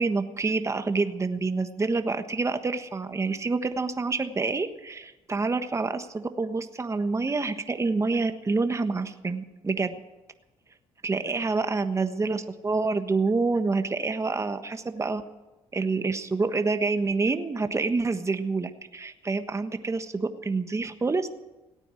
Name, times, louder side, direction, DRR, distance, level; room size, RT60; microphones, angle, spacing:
voice 1, 0.0-9.9 11.0-15.2 15.7-21.3, right 3 dB, 25° right, 8 dB, 1.3 m, -27 dB
17.5 x 9.0 x 9.1 m, 1.0 s
cardioid pair, 80°, 11 cm